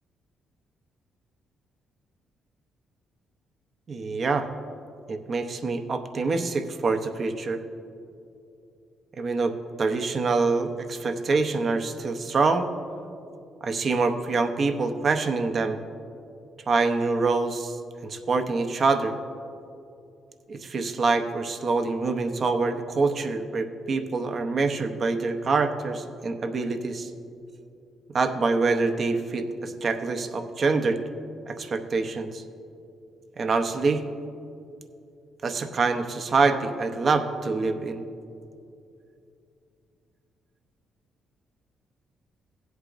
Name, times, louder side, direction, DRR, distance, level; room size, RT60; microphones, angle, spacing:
voice 1, 3.9-4.5 5.1-7.6 9.2-12.7 13.6-15.8 16.7-19.1 20.5-27.1 28.1-31.0 31.5-32.4 33.4-34.0 35.4-38.0, right 4 dB, 45° right, 7 dB, 0.7 m, -25 dB
17.0 x 8.1 x 2.5 m, 2.6 s
cardioid pair, 90°, 0 cm